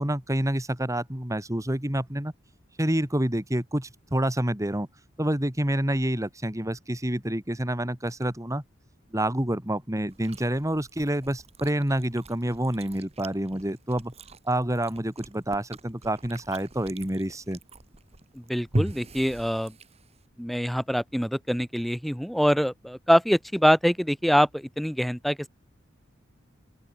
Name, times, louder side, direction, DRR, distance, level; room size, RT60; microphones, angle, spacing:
voice 1, 0.0-2.3 2.8-4.9 5.2-8.6 9.1-14.1 14.4-17.6, right 1 dB, 15° right, 2.3 m, -28 dB
Chewing mastication, 10.1-20.3, right 1 dB, 35° right, 1.5 m, -39 dB
voice 2, 18.3-19.7 20.4-25.5, equal, ahead, 1.3 m, -24 dB
open air
head